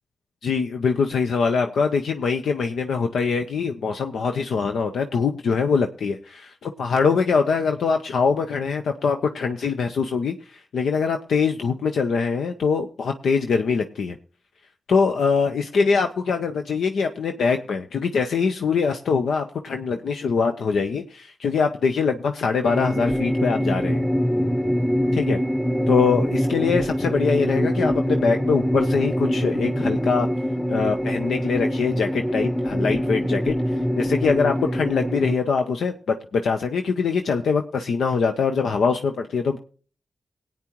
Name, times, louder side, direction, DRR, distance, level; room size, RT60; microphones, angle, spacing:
voice 1, 0.4-14.2 14.9-24.1 25.1-25.4 25.9-30.3 30.7-33.5 33.9-39.6, left 5 dB, 85° left, 6 dB, 0.7 m, -23 dB
sound 1, 22.6-35.3, equal, 5° left, 0.9 m, -24 dB
20.0 x 8.8 x 3.0 m, 0.39 s
cardioid pair, 50°, 0 cm